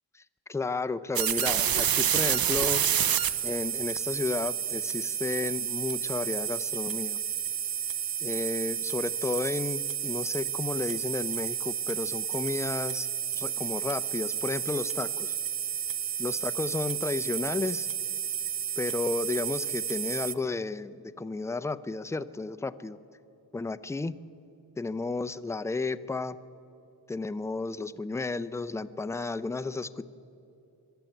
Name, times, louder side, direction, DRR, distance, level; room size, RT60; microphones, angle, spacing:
voice 1, 0.5-2.8 3.4-7.2 8.2-13.1 13.4-15.3 16.2-17.9 18.8-23.0 23.5-24.2 24.8-26.4 27.1-30.0, left 3 dB, 5° left, 13 dB, 0.4 m, -32 dB
sound 1, 1.2-20.3, right 9 dB, 55° right, 0.9 m, -30 dB
23.0 x 12.0 x 9.2 m, 2.8 s
cardioid pair, 105°, 43 cm